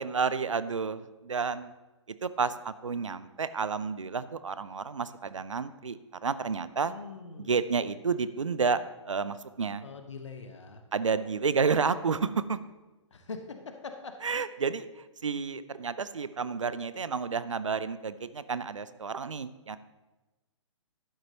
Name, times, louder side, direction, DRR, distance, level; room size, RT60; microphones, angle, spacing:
voice 1, 0.0-1.7 2.2-6.0 6.2-6.9 7.4-9.9 10.9-12.6 14.2-19.8, right 5 dB, 70° right, 14 dB, 0.5 m, -30 dB
voice 2, 6.8-7.5 9.8-10.8 13.1-14.1, left 4 dB, 65° left, 6 dB, 1.1 m, -43 dB
11.5 x 8.9 x 2.9 m, 1.1 s
figure-of-eight pair, 120°, 16 cm